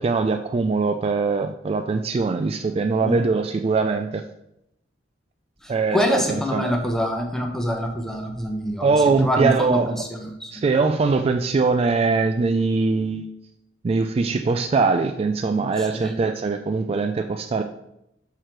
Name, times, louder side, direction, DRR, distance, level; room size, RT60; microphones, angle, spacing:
voice 1, 0.0-4.2 5.7-6.7 8.8-10.0 10.5-13.3 13.8-17.6, right 4 dB, 35° right, 6 dB, 0.3 m, -22 dB
voice 2, 5.9-8.9 9.2-10.5 15.9-16.2, equal, 5° left, 3 dB, 0.9 m, -25 dB
5.9 x 4.9 x 4.5 m, 0.81 s
head